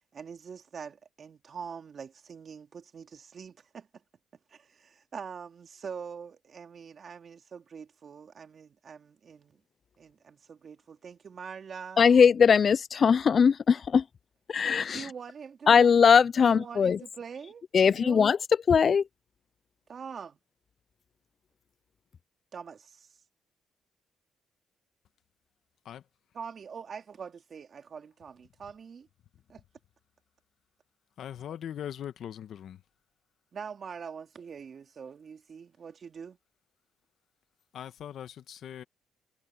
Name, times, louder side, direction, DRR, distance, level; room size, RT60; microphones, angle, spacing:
voice 1, 0.1-3.9 4.5-9.6 10.0-12.1 14.9-15.9 16.4-18.3 19.9-20.4 22.5-23.1 26.3-29.1 29.5-29.6 33.5-36.4, right 6 dB, 50° right, 2.8 m, -44 dB
voice 2, 12.0-14.0 14.5-15.0 15.7-17.0 17.7-18.4 18.7-19.0, left 6 dB, 45° left, 0.3 m, -20 dB
voice 3, 31.2-32.8 37.7-38.8, left 10 dB, 70° left, 1.3 m, -40 dB
cardioid pair, 90°, 0 cm